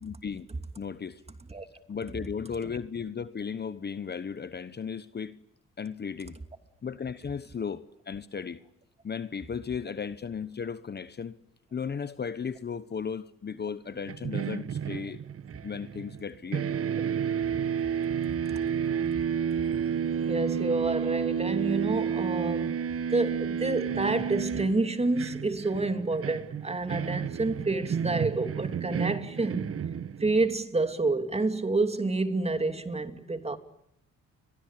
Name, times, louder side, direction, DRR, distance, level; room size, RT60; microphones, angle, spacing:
voice 1, 0.0-0.5 0.8-1.2 1.9-5.4 5.8-6.4 6.8-8.6 9.0-11.3 11.7-15.2 15.6-16.7, left 6 dB, 35° left, 1.1 m, -35 dB
sound 1, 14.1-16.3 16.5-30.5, right 7 dB, 50° right, 1.2 m, -31 dB
voice 2, 20.3-22.7 23.1-29.7 30.2-33.6, right 3 dB, 20° right, 2.8 m, -28 dB
30.0 x 23.0 x 8.4 m
cardioid pair, 90°, 30 cm